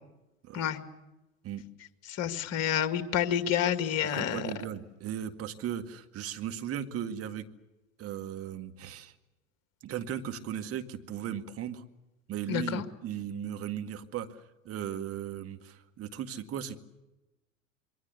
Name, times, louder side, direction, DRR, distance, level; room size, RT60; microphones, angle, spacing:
voice 1, 2.1-4.5 12.5-12.8, left 9 dB, 40° left, 9 dB, 2.2 m, -29 dB
voice 2, 4.0-7.5 8.0-9.1 9.8-11.8 12.3-16.8, right 9 dB, 35° right, 7 dB, 2.0 m, -37 dB
27.0 x 22.5 x 7.0 m, 1.0 s
figure-of-eight pair, 80°, 39 cm